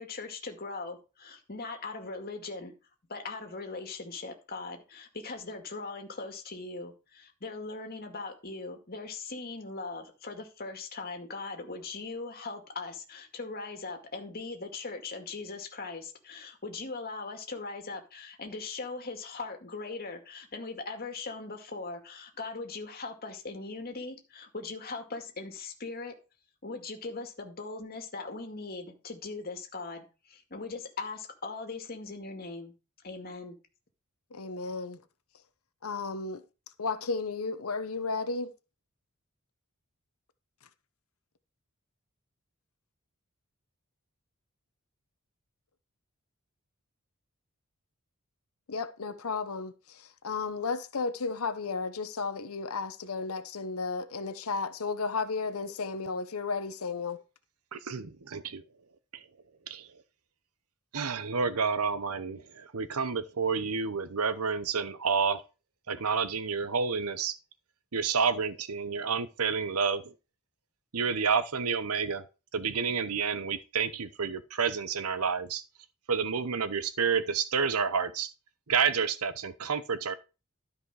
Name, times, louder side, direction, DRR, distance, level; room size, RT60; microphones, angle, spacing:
voice 1, 0.0-2.7 3.1-26.1 26.6-32.7 33.0-33.6, left 3 dB, 45° left, 2.1 m, -40 dB
voice 2, 34.3-35.0 35.8-36.4 36.8-38.5 48.7-57.2, left 4 dB, 75° left, 0.9 m, -33 dB
voice 3, 57.7-58.6 59.7-59.9 60.9-65.4 65.9-67.4 67.9-70.1 70.9-72.2 72.5-75.6 76.1-78.3 78.7-80.1, right 5 dB, 90° right, 0.9 m, -29 dB
13.0 x 5.2 x 4.8 m
head